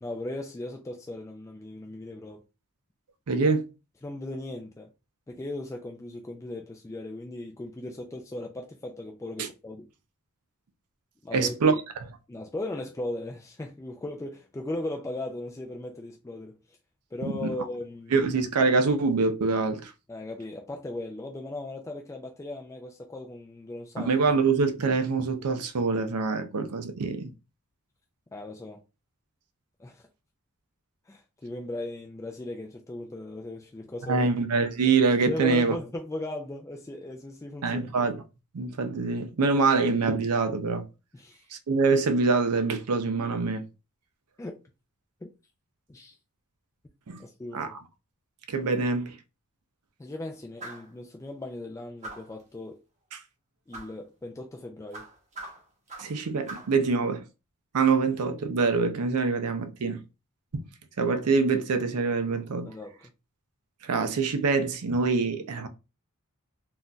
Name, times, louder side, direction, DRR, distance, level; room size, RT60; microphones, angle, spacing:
voice 1, 0.0-2.4 4.0-4.9 5.3-9.9 11.2-11.8 12.3-16.6 17.1-18.3 20.1-24.1 28.3-28.8 29.8-30.0 31.1-34.3 35.3-37.9 41.1-41.4 44.4-44.6 45.2-45.3 45.9-46.1 47.2-47.8 50.0-52.8 53.7-55.1 62.7-63.0, left 2 dB, 15° left, 0.3 m, -37 dB
voice 2, 3.3-3.7 9.4-9.5 11.3-11.7 17.4-17.5 18.1-19.9 24.0-27.3 34.1-35.8 37.6-38.2 38.5-40.9 41.5-43.7 47.1-47.2 47.5-47.7 48.5-49.2 53.1-53.2 56.0-57.2 57.7-60.0 60.5-60.6 61.0-62.7 63.8-65.7, right 4 dB, 90° right, 0.5 m, -25 dB
sound 1, 50.6-50.9 52.0-52.4 53.7-54.0 54.9-56.2 56.5-56.8, right 2 dB, 30° right, 0.9 m, -42 dB
3.9 x 2.5 x 2.2 m
head